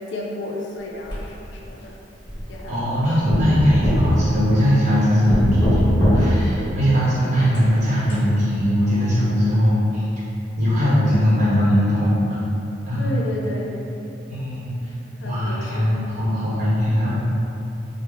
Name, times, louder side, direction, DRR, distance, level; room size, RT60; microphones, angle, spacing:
voice 1, 0.1-1.9 2.5-3.3 13.0-13.8 15.2-16.1, left 1 dB, 75° left, -2 dB, 0.5 m, -32 dB
sound 1, 1.1-1.7 2.2-2.9 3.3-4.9 5.3-6.6 7.3-8.2, equal, 25° left, 1.2 m, -22 dB
voice 2, 2.7-10.0 10.6-12.2 12.9-13.0 14.3-14.7 15.2-17.3, equal, 40° right, -10 dB, 0.9 m, -20 dB
3.6 x 2.1 x 3.3 m, 2.8 s
head